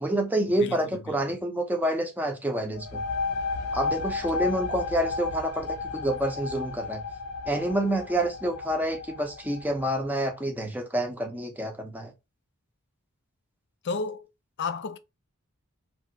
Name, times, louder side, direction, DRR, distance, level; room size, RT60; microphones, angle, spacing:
voice 1, 0.0-3.0 3.7-7.0 7.5-12.1, right 1 dB, 10° right, 0.6 m, -28 dB
voice 2, 0.6-1.4 13.8-14.3 14.6-15.0, left 4 dB, 50° left, 0.4 m, -33 dB
sound 1, 2.7-10.2, left 4 dB, 80° left, 0.7 m, -33 dB
3.1 x 2.5 x 2.8 m
head